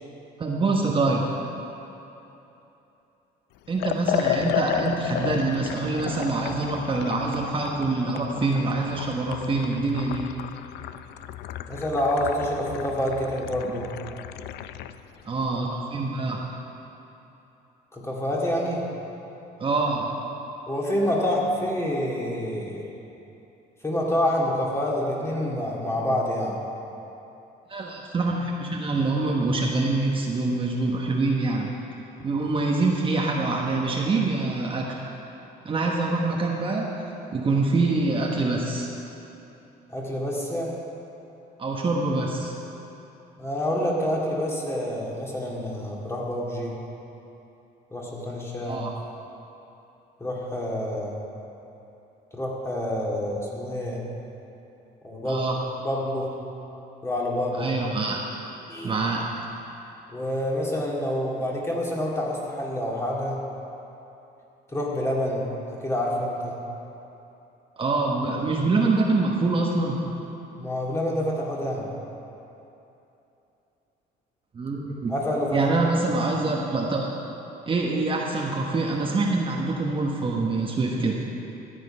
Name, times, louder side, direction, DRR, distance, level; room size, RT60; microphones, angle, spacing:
voice 1, 0.4-1.3 3.7-10.4 15.2-16.4 19.6-20.2 27.7-31.7 32.2-35.0 35.6-36.9 37.3-38.9 41.6-42.5 48.6-48.9 55.2-55.6 57.6-58.2 58.8-59.3 67.8-70.0 74.5-75.1 75.5-77.1 77.7-81.2, right 3 dB, 30° right, -1 dB, 1.2 m, -25 dB
Liquid, 3.8-15.0, left 11 dB, 80° left, 0.4 m, -33 dB
voice 2, 11.7-13.9 17.9-18.8 20.7-22.8 23.8-26.6 39.9-40.7 43.4-46.8 47.9-48.8 50.2-51.2 52.3-54.0 55.0-55.5 55.8-56.3 57.0-57.7 58.7-58.9 60.1-63.4 64.7-65.4 65.8-66.5 70.6-71.9 75.1-75.9, left 1 dB, 15° left, -3 dB, 2.3 m, -27 dB
13.5 x 8.2 x 5.5 m, 2.9 s
cardioid pair, 110°, 17 cm